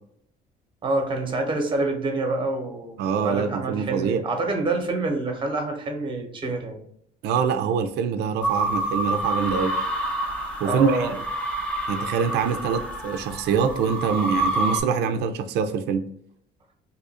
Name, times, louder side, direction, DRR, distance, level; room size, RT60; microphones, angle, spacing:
voice 1, 0.8-6.8 10.6-11.1, right 2 dB, 30° right, 3 dB, 0.9 m, -27 dB
voice 2, 3.0-4.2 7.2-9.7 10.6-11.1 11.9-16.0, right 6 dB, 75° right, 7 dB, 0.4 m, -24 dB
sound 1, 8.4-14.8, right 1 dB, 10° left, 0.7 m, -28 dB
2.8 x 2.4 x 4.1 m, 0.66 s
cardioid pair, 110°, 17 cm